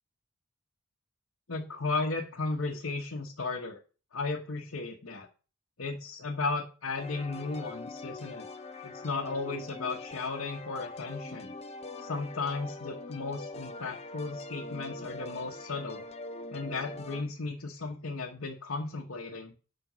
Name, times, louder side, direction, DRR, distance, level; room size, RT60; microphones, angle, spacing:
voice 1, 1.5-3.8 4.1-5.3 5.8-8.5 8.8-11.5 12.0-16.0 16.5-19.5, left 3 dB, 70° left, -1 dB, 1.1 m, -35 dB
sound 1, 6.9-17.2, left 2 dB, 30° left, 0.7 m, -43 dB
7.8 x 5.1 x 6.2 m, 0.36 s
head